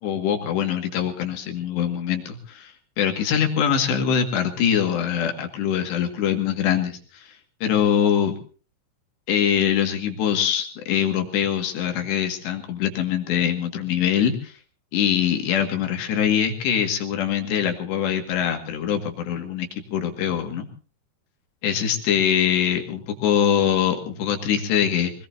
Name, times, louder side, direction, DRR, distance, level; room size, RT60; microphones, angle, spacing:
voice 1, 0.0-7.4 7.6-8.4 9.3-14.5 14.9-20.7 21.6-25.1, left 8 dB, 70° left, 4 dB, 4.1 m, -23 dB
25.0 x 20.0 x 2.7 m, 0.38 s
omnidirectional pair, 5.3 m